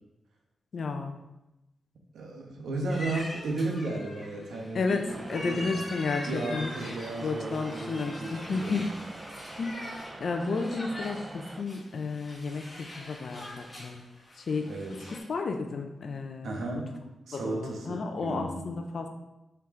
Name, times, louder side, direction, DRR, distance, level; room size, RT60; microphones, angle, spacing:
voice 1, 0.7-1.2 4.7-6.7 7.2-8.8 9.6-14.0 14.3-14.7 15.1-16.6 17.3-19.1, left 4 dB, 55° left, 4 dB, 0.5 m, -32 dB
voice 2, 2.1-5.0 5.3-5.7 6.3-8.8 14.7-15.1 16.4-17.0 17.3-18.6, right 2 dB, 90° right, 1 dB, 1.2 m, -34 dB
sound 1, 2.9-15.2, left 1 dB, 20° left, 1.9 m, -43 dB
sound 2, 5.1-11.6, right 2 dB, 20° right, 0.4 m, -45 dB
5.8 x 4.6 x 3.7 m, 0.95 s
wide cardioid pair, 130°, 0 cm